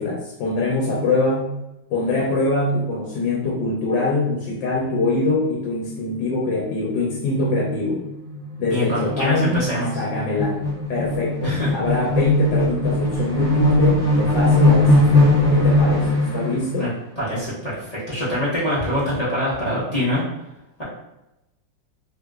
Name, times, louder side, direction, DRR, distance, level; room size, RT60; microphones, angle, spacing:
voice 1, 0.0-1.5 1.9-8.0 8.6-16.9, left 2 dB, 75° left, -3 dB, 1.3 m, -23 dB
sound 1, 5.9-6.2 6.6-6.7 6.9-16.6, left 1 dB, 15° right, 1.3 m, -20 dB
voice 2, 8.6-10.0 11.4-11.7 16.8-16.9 17.2-20.2, equal, 35° left, -10 dB, 0.6 m, -24 dB
3.2 x 2.8 x 2.3 m, 0.91 s
omnidirectional pair, 2.0 m